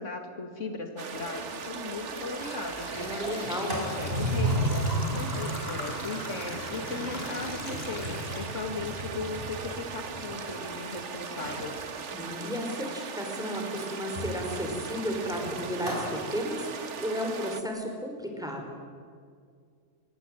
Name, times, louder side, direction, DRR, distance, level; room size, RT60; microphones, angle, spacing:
voice 1, 0.0-3.2 3.6-11.8, left 3 dB, 70° left, 6 dB, 2.5 m, -37 dB
sound 1, 1.0-17.6, right 5 dB, 65° right, 1.6 m, -39 dB
Sliding door, 1.3-1.4 1.7-1.8 2.2-2.5 2.8-10.8 11.3-11.8 13.8-16.2, right 1 dB, 40° right, 6.6 m, -35 dB
sound 2, 1.4-1.5 1.9-9.0 9.5-9.6 10.4-10.5 11.0-11.1 11.6-11.8, left 1 dB, 50° left, 4.1 m, -40 dB
voice 2, 3.0-3.7 12.1-16.7 17.0-18.6, equal, 5° right, 2 dB, 5.0 m, -33 dB
24.0 x 22.5 x 9.2 m, 2.1 s
omnidirectional pair, 1.3 m